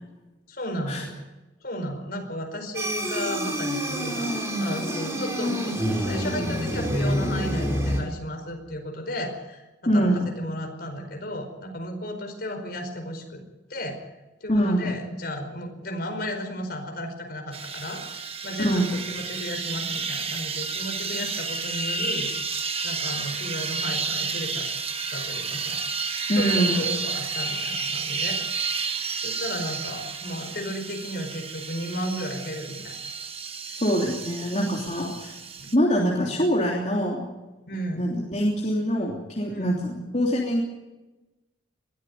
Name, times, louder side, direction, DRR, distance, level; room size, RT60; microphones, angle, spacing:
voice 1, 0.5-1.2 1.6-4.3 4.6-9.6 9.9-13.4 13.7-14.0 14.4-18.0 18.4-22.3 22.8-24.7 25.1-25.8 26.3-28.8 29.2-33.0 33.7-33.8 35.6-35.7 37.7-38.1 39.5-39.8, equal, 50° left, 4 dB, 4.9 m, -34 dB
sound 1, 2.7-8.0, equal, 15° right, 4.2 m, -27 dB
voice 2, 9.9-10.2 14.5-14.9 18.6-18.9 26.3-26.8 33.7-35.4 35.7-37.2 38.0-40.6, equal, 35° left, -3 dB, 3.2 m, -24 dB
sound 2, 17.5-35.8, right 4 dB, 30° right, 1.2 m, -31 dB
21.5 x 14.0 x 9.5 m, 1.1 s
head